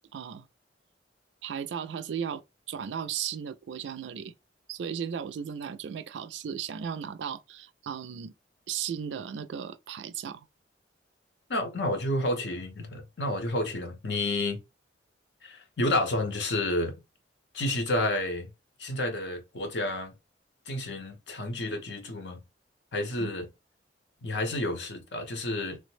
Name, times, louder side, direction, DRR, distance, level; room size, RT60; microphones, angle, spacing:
voice 1, 0.1-0.5 1.4-2.4 2.7-4.3 4.7-8.3 8.7-10.5 23.2-23.3, right 8 dB, 75° right, 0.4 m, -35 dB
voice 2, 11.5-14.6 15.4-16.9 17.5-18.5 18.8-20.1 20.7-22.4 22.9-23.5 24.2-25.8, left 1 dB, 70° left, 0.8 m, -30 dB
3.2 x 2.0 x 3.1 m
head